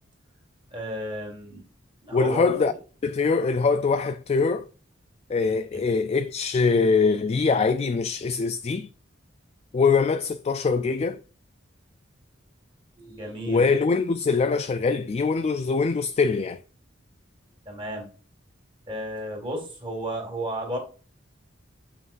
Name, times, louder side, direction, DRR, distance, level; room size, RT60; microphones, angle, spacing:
voice 1, 0.7-1.7 2.0-2.7 5.7-5.9 13.0-13.7 17.7-18.1 18.9-20.8, equal, 25° right, 2.0 m, -33 dB
voice 2, 2.1-2.7 3.0-4.7 5.3-8.9 9.7-11.2 13.5-16.6, left 4 dB, 35° left, 0.3 m, -23 dB
7.8 x 5.6 x 2.5 m
head